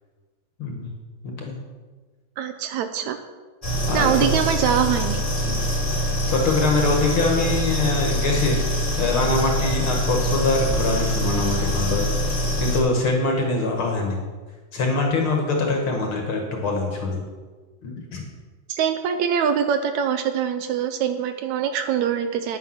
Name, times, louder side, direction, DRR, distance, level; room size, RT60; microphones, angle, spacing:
voice 1, 1.2-1.6 3.9-4.3 5.4-5.6 6.3-14.2 14.7-17.2 17.8-18.2, left 3 dB, 50° left, 1 dB, 2.2 m, -24 dB
voice 2, 2.4-3.2 3.9-5.2 18.7-22.6, right 8 dB, 75° right, 8 dB, 1.9 m, -23 dB
sound 1, 3.6-12.8, equal, 10° left, 2.1 m, -24 dB
10.5 x 9.2 x 6.0 m, 1.4 s
omnidirectional pair, 3.5 m